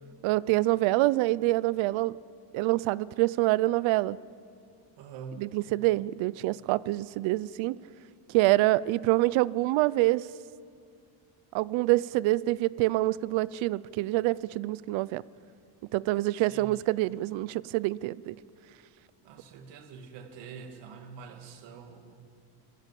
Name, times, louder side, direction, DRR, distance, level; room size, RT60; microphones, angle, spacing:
voice 1, 0.2-2.2 2.5-4.2 5.4-7.8 8.3-10.3 11.5-15.2 15.9-18.3, right 18 dB, 85° right, 20 dB, 0.7 m, -26 dB
voice 2, 5.0-5.5 16.4-16.8 19.2-22.1, right 6 dB, 65° right, 5 dB, 2.5 m, -45 dB
26.5 x 21.5 x 8.4 m, 2.3 s
cardioid pair, 175°, 46 cm